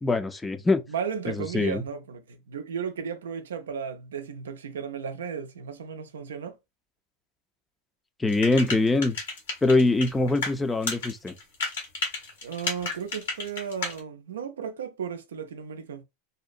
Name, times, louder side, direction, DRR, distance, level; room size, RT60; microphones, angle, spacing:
voice 1, 0.0-0.8 1.5-1.8 8.2-9.2 9.6-11.3, left 2 dB, 15° left, 0.4 m, -23 dB
voice 2, 0.9-6.6 12.4-16.0, right 7 dB, 90° right, 0.4 m, -35 dB
sound 1, 8.3-10.5 10.8-14.0, left 3 dB, 85° left, 1.1 m, -31 dB
2.7 x 2.0 x 2.4 m
hypercardioid pair, 100°, 0 cm